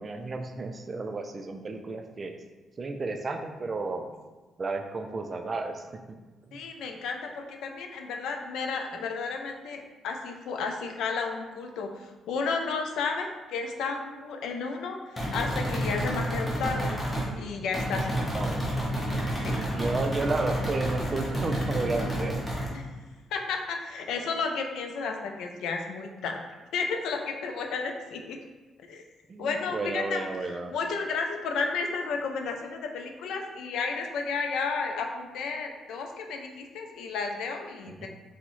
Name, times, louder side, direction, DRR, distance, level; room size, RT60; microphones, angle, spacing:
voice 1, 0.0-2.3 2.8-4.1 4.6-6.2 6.5-6.6 18.3-18.7 19.5-22.4 29.3-30.7 37.9-38.1, right 3 dB, 35° right, 5 dB, 0.3 m, -32 dB
voice 2, 6.5-17.0 17.4-18.3 19.4-19.6 22.7-22.9 23.3-26.4 26.7-28.4 28.9-29.0 29.4-30.3 30.7-38.1, left 4 dB, 80° left, 3 dB, 0.3 m, -32 dB
sound 1, 15.2-17.3 17.7-22.7, equal, 20° left, 0.9 m, -30 dB
3.5 x 2.1 x 3.0 m, 1.2 s
cardioid pair, 90°, 0 cm